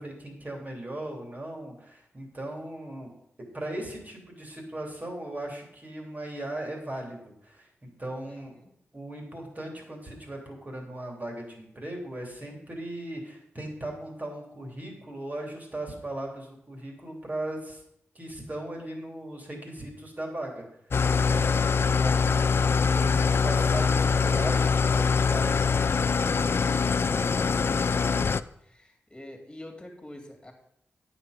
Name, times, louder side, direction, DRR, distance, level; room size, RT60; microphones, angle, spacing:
voice 1, 0.0-3.1 3.4-8.5 8.9-17.8 18.1-20.6 21.2-21.6 22.0-25.6 26.1-26.7, right 1 dB, 35° right, 0 dB, 3.1 m, -38 dB
voice 2, 8.3-8.7 27.7-30.5, left 1 dB, 15° left, 2 dB, 2.7 m, -46 dB
Engine starting / Idling, 20.9-28.4, left 5 dB, 55° left, 0.3 m, -23 dB
9.4 x 7.3 x 5.1 m, 0.77 s
cardioid pair, 50°, 5 cm